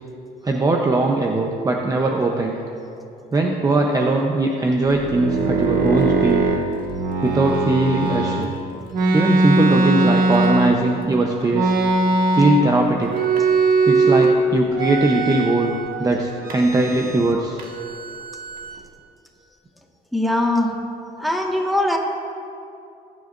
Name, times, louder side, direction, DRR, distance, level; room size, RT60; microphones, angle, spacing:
voice 1, 0.4-2.6 3.3-6.5 7.2-8.5 9.1-11.7 12.3-13.1 13.9-17.6, right 2 dB, 20° right, 1 dB, 0.8 m, -20 dB
sound 1, 4.9-8.5 8.9-11.0 11.5-12.8 13.1-14.4 14.7-15.9 16.4-17.3 17.6-18.8, right 3 dB, 55° right, 1.7 m, -20 dB
voice 2, 20.1-20.7 21.2-22.0, left 1 dB, ahead, 0 dB, 1.6 m, -21 dB
21.0 x 9.6 x 2.6 m, 2.7 s
cardioid pair, 110°, 17 cm